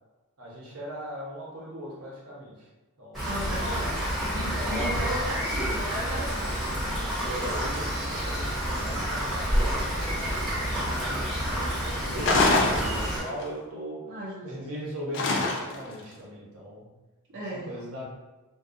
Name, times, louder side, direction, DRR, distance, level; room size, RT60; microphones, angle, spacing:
voice 1, 0.4-2.7 3.0-3.3 4.5-5.0 7.2-14.0 14.4-16.9 17.5-18.0, equal, 75° right, -4 dB, 0.9 m, -39 dB
Rain, 3.1-13.2, equal, ahead, 1.0 m, -29 dB
voice 2, 3.3-4.0 4.3-6.6 14.1-14.5 17.3-17.7, equal, 55° right, -8 dB, 0.5 m, -35 dB
sound 1, 12.2-13.4 15.1-15.9, left 2 dB, 60° left, 0.4 m, -24 dB
2.5 x 2.2 x 2.5 m, 1.1 s
head